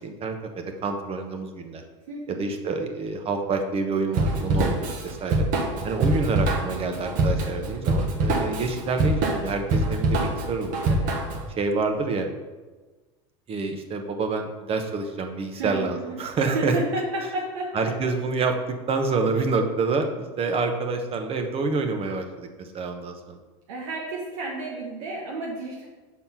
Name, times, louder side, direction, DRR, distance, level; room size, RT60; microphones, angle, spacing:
voice 1, 0.0-1.8 2.3-5.4 5.8-11.0 11.6-12.3 13.5-16.8 17.7-18.6 18.9-23.4, right 4 dB, 35° right, 4 dB, 1.1 m, -27 dB
voice 2, 2.1-2.5 10.9-11.2 15.5-16.2 16.5-17.7 23.7-25.9, right 2 dB, 80° right, -3 dB, 1.2 m, -31 dB
Drum kit / Drum, 4.1-11.5, right 2 dB, 55° right, 1.4 m, -24 dB
5.7 x 4.2 x 5.6 m, 1.3 s
hypercardioid pair, 90°, 16 cm